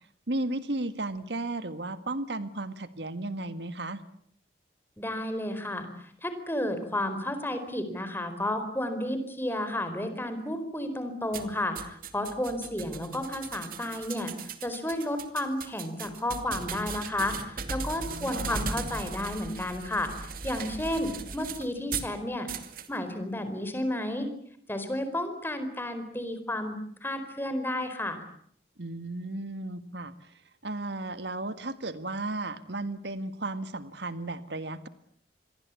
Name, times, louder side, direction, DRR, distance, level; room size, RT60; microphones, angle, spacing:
voice 1, 0.3-4.0 18.1-18.6 28.8-34.9, right 2 dB, 75° right, 12 dB, 1.6 m, -34 dB
voice 2, 5.0-22.5 22.9-24.3 24.7-28.2, left 1 dB, 10° left, 9 dB, 4.6 m, -32 dB
sound 1, 11.3-22.1 22.5-22.9, right 5 dB, 50° right, 2.5 m, -38 dB
27.5 x 22.5 x 8.5 m, 0.65 s
head